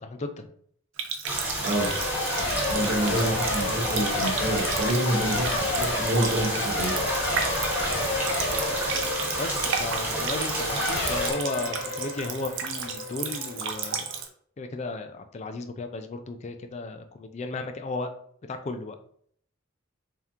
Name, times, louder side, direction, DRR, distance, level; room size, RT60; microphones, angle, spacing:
voice 1, 0.0-0.5 2.4-2.7 9.4-14.1 14.6-18.1 18.5-19.0, left 3 dB, 30° left, 7 dB, 0.3 m, -34 dB
Water tap faucet, 1.0-14.3, right 6 dB, 60° right, 0.6 m, -34 dB
sound 1, 1.2-11.3, right 1 dB, 10° right, 0.9 m, -31 dB
Race car auto racing / Accelerating revving vroom / Mechanisms, 1.7-14.2, left 2 dB, 55° left, 0.9 m, -31 dB
voice 2, 2.7-6.9, right 1 dB, 35° right, -3 dB, 1.1 m, -28 dB
3.5 x 2.8 x 3.5 m, 0.62 s
head